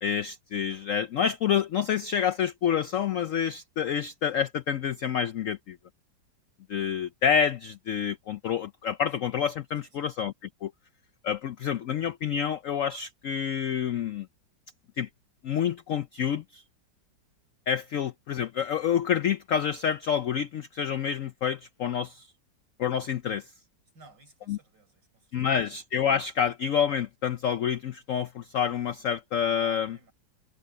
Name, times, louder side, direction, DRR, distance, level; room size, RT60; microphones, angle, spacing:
voice 1, 0.0-5.8 6.7-10.3 10.6-10.7 11.2-14.3 15.0-15.1 15.4-16.6 17.7-22.3 22.8-23.5 24.5-24.6 25.3-30.0, left 8 dB, 75° left, 0.7 m, -28 dB
voice 2, 9.8-10.1 23.9-25.7 29.5-30.1, right 3 dB, 65° right, 6.5 m, -56 dB
omnidirectional pair, 2.0 m